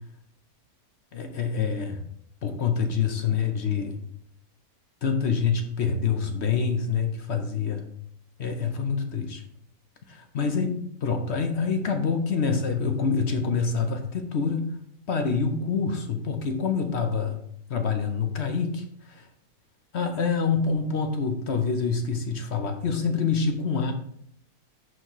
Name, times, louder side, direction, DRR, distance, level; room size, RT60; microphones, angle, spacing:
voice 1, 1.1-2.0 2.4-4.0 5.0-7.8 8.4-9.4 10.1-14.8 15.1-17.4 17.7-19.3 19.9-23.9, left 5 dB, 55° left, 6 dB, 1.0 m, -26 dB
11.0 x 4.2 x 3.1 m, 0.68 s
omnidirectional pair, 1.6 m